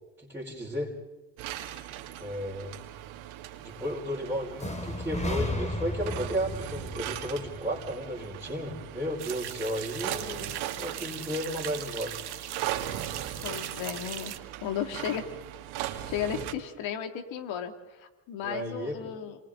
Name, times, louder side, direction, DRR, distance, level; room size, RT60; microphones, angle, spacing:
voice 1, 0.2-0.9 2.2-2.7 3.6-10.5 10.8-12.2 18.4-19.1, equal, 5° right, -5 dB, 4.7 m, -34 dB
sound 1, 1.4-16.5, right 12 dB, 80° right, 2.3 m, -39 dB
sound 2, 4.6-8.5, left 1 dB, 15° left, 2.8 m, -34 dB
sound 3, 9.2-14.4, right 11 dB, 55° right, 1.7 m, -39 dB
voice 2, 13.4-14.3 14.6-15.2 16.1-19.4, left 9 dB, 70° left, 6 dB, 2.6 m, -34 dB
28.0 x 27.0 x 3.9 m, 1.1 s
supercardioid pair, 75°, 47 cm